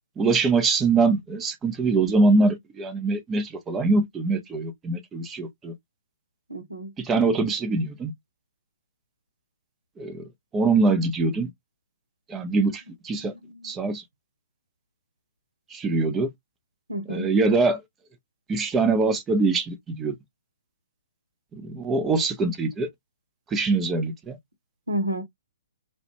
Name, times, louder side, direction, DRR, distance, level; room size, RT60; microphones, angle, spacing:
voice 1, 0.2-5.7 7.0-8.1 10.0-10.2 10.5-11.5 12.3-13.3 13.6-14.0 15.7-16.3 17.1-17.8 18.5-20.1 21.5-22.9 23.5-24.4, right 3 dB, 15° right, 0.6 m, -23 dB
voice 2, 6.5-6.9 12.3-12.7 13.1-13.7 16.9-17.3 24.9-25.2, equal, 75° right, 0.8 m, -32 dB
2.4 x 2.1 x 2.9 m
figure-of-eight pair, 125°, 0 cm